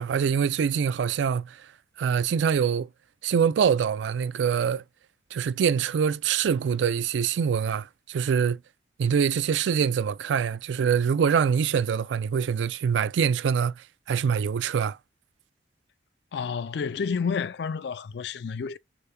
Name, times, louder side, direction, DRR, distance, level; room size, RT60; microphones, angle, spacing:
voice 1, 0.0-1.6 2.0-2.9 3.2-4.8 5.3-8.6 9.0-15.0, right 7 dB, 80° right, 0.3 m, -24 dB
voice 2, 16.3-18.8, left 6 dB, 65° left, 0.4 m, -30 dB
6.6 x 2.9 x 2.2 m
head